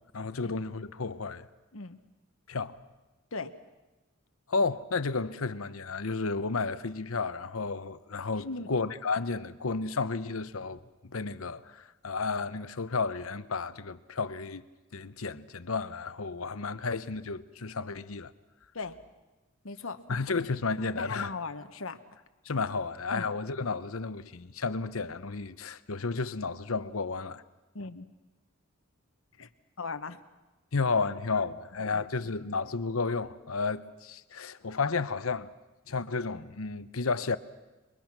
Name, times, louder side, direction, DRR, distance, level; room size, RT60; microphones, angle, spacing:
voice 1, 0.1-1.5 2.5-2.8 4.5-14.6 14.9-18.3 20.1-21.3 22.4-27.4 30.7-35.5 35.9-37.4, left 4 dB, 90° left, 0.9 m, -32 dB
voice 2, 8.3-8.7 18.7-19.0 19.6-20.0 21.0-22.0 23.1-23.3 27.7-28.1 29.4-29.5 29.8-30.2 31.9-32.0, left 3 dB, 70° left, 1.3 m, -38 dB
29.0 x 22.5 x 6.1 m
head